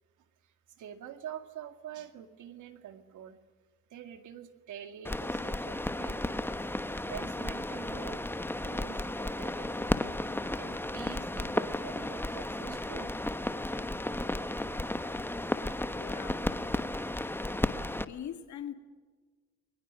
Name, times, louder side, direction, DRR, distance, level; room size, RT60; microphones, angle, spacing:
voice 1, 0.8-3.4 3.9-6.4 7.0-8.2 8.6-9.9 10.6-13.2, right 10 dB, 80° right, 2.3 m, -46 dB
sound 1, 5.0-18.0, left 1 dB, 5° left, 1.1 m, -34 dB
voice 2, 16.0-16.5 18.1-18.7, left 9 dB, 70° left, 2.3 m, -41 dB
30.0 x 22.0 x 6.4 m
cardioid pair, 90°, 30 cm